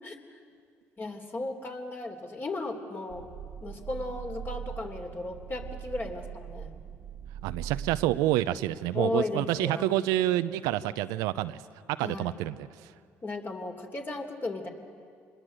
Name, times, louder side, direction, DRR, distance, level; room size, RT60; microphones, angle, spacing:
voice 1, 1.0-3.3 3.6-6.7 8.9-9.9 12.0-12.4 13.2-14.7, left 2 dB, 35° left, 3 dB, 3.2 m, -35 dB
sound 1, 3.1-8.3, right 9 dB, 65° right, 1.0 m, -41 dB
voice 2, 7.4-11.6 11.9-12.9, right 14 dB, 85° right, 13 dB, 0.6 m, -28 dB
26.5 x 21.0 x 7.8 m, 2.1 s
supercardioid pair, 70°, 6 cm